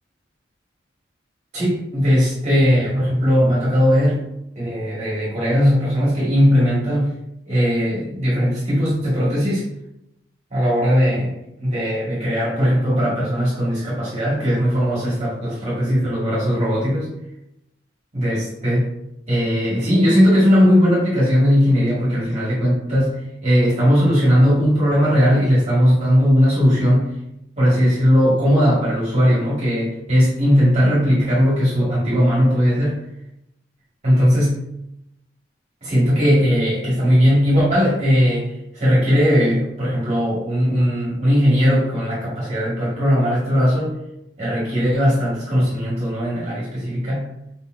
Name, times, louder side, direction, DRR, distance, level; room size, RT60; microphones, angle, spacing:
voice 1, 1.5-4.2 4.5-7.1 7.5-9.7 10.5-11.3 11.6-17.1 18.1-18.9 19.3-27.1 27.6-33.0 34.0-34.7 35.8-43.9 44.4-47.3, equal, 35° right, -8 dB, 1.7 m, -18 dB
5.0 x 4.2 x 2.5 m, 0.84 s
head